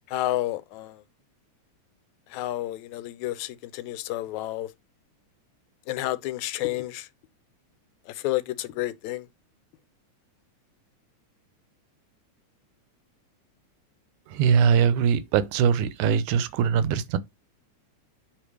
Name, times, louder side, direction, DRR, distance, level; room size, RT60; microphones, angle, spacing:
voice 1, 0.1-1.0 2.3-4.7 5.9-7.1 8.1-9.3, left 15 dB, 80° left, 1.9 m, -30 dB
voice 2, 14.3-17.2, right 7 dB, 90° right, 2.2 m, -22 dB
8.5 x 3.2 x 4.7 m
omnidirectional pair, 3.4 m